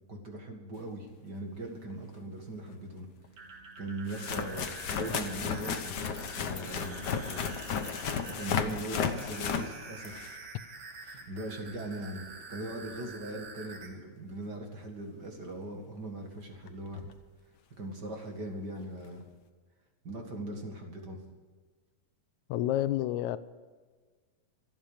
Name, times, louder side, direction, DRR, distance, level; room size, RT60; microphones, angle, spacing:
voice 1, 0.1-3.1 3.8-7.6 8.4-10.3 11.3-17.0 17.8-19.2 20.0-21.2, right 1 dB, 40° right, 2 dB, 2.3 m, -40 dB
sound 1, 1.9-2.0 3.2-3.3 4.1-10.5 15.6-15.7 16.7-16.8 16.9-17.2 19.0-19.1, left 7 dB, 70° left, 1.0 m, -34 dB
sound 2, 3.2-13.9, right 4 dB, 85° right, 4.1 m, -47 dB
voice 2, 22.5-23.4, left 13 dB, 85° left, 14 dB, 2.1 m, -29 dB
26.5 x 8.9 x 5.0 m, 1.5 s
omnidirectional pair, 3.3 m